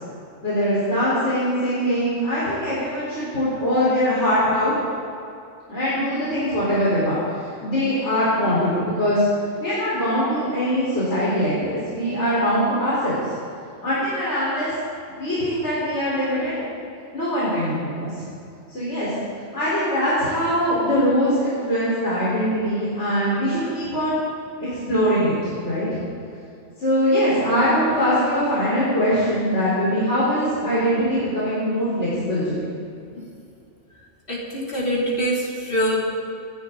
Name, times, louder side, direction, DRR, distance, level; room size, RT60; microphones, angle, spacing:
voice 1, 0.4-4.7 5.7-9.3 9.6-13.2 13.8-14.7 15.2-16.5 17.1-18.1 18.7-19.1 19.5-24.2 24.6-25.9 26.8-32.5, equal, 70° left, -10 dB, 4.9 m, -22 dB
voice 2, 34.3-36.0, equal, 50° left, -5 dB, 3.6 m, -24 dB
28.0 x 11.5 x 4.0 m, 2.5 s
omnidirectional pair, 1.2 m